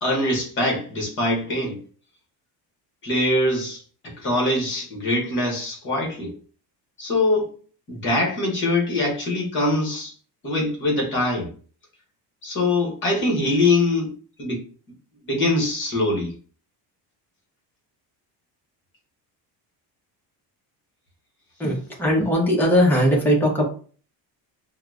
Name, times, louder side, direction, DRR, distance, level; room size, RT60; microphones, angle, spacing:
voice 1, 0.0-1.8 3.0-6.3 7.0-7.5 7.9-10.1 10.4-11.5 12.4-14.1 14.4-14.6 15.2-16.3, left 2 dB, 25° left, 0.9 m, -23 dB
voice 2, 21.6-23.6, equal, 5° left, 0.5 m, -19 dB
4.6 x 2.0 x 2.3 m
cardioid pair, 180°, 42 cm